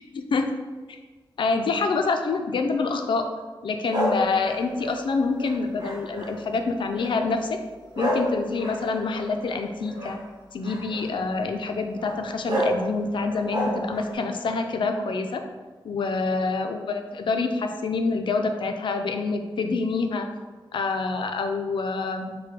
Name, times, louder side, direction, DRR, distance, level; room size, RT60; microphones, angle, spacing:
voice 1, 0.1-0.5 0.9-1.0 1.4-3.3 3.6-7.6 8.0-10.2 10.5-15.4 15.8-20.3 20.7-22.4, left 4 dB, 70° left, 5 dB, 0.4 m, -26 dB
sound 1, 3.9-6.5 6.9-7.3 7.9-10.2 10.6-11.1 12.0-12.1 12.5-12.8 13.2-14.1, right 1 dB, 55° right, 1.1 m, -29 dB
5.7 x 2.2 x 3.1 m, 1.3 s
wide cardioid pair, 90°, 9 cm